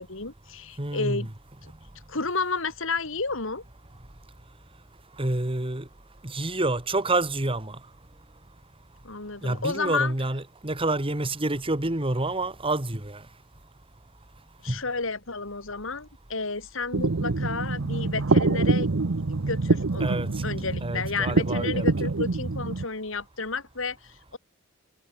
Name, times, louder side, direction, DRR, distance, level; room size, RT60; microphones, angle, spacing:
voice 1, 0.0-1.3 1.6-1.7 2.1-3.6 9.0-10.1 14.6-18.9 19.3-20.2 20.4-24.4, left 4 dB, 65° left, 2.6 m, -31 dB
voice 2, 0.8-1.3 5.2-5.9 6.2-7.8 9.4-13.2 14.7-14.8 20.0-20.3 20.8-22.1, right 2 dB, 25° right, 1.9 m, -28 dB
sound 1, 16.9-22.8, right 3 dB, 70° right, 0.8 m, -25 dB
head